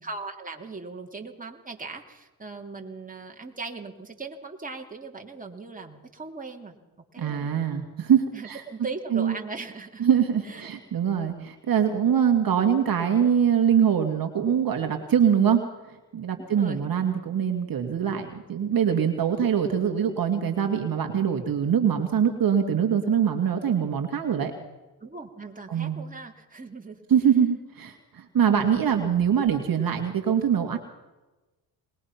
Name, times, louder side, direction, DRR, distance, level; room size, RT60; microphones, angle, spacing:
voice 1, 0.0-6.7 7.1-7.5 8.3-10.0 10.4-10.7 16.3-16.9 25.0-27.0, right 3 dB, 15° right, 2 dB, 2.9 m, -39 dB
voice 2, 7.2-8.6 9.1-9.3 10.0-15.6 16.1-24.5 25.7-26.0 27.1-30.8, right 8 dB, 45° right, 4 dB, 2.2 m, -23 dB
21.5 x 20.5 x 5.9 m, 1.1 s
supercardioid pair, 70°, 46 cm